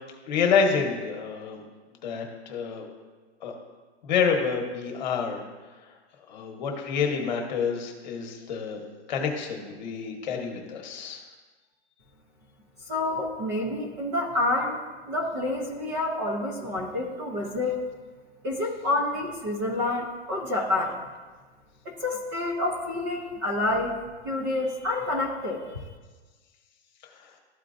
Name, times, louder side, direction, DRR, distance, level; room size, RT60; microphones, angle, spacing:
voice 1, 0.3-1.6 2.0-2.9 3.4-3.5 4.0-5.4 6.3-8.8 9.1-11.2, left 6 dB, 40° left, 2 dB, 1.2 m, -28 dB
voice 2, 12.9-14.8 15.1-17.8 18.4-20.9 21.8-23.9 24.2-25.6, left 2 dB, 20° right, -1 dB, 0.6 m, -28 dB
13.0 x 4.5 x 2.6 m, 1.3 s
supercardioid pair, 180°, 34 cm